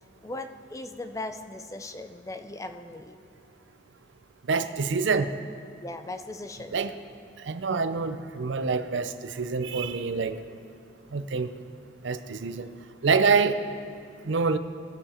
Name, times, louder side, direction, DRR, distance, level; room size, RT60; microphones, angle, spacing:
voice 1, 0.2-3.2 5.8-6.8 14.2-14.3, left 2 dB, 15° left, 8 dB, 0.4 m, -38 dB
voice 2, 4.5-5.3 6.7-6.9 7.4-10.4 11.1-11.5 12.0-12.7 13.0-13.6 14.3-14.6, right 4 dB, 75° right, 11 dB, 0.6 m, -26 dB
20.0 x 7.0 x 4.3 m, 2.5 s
head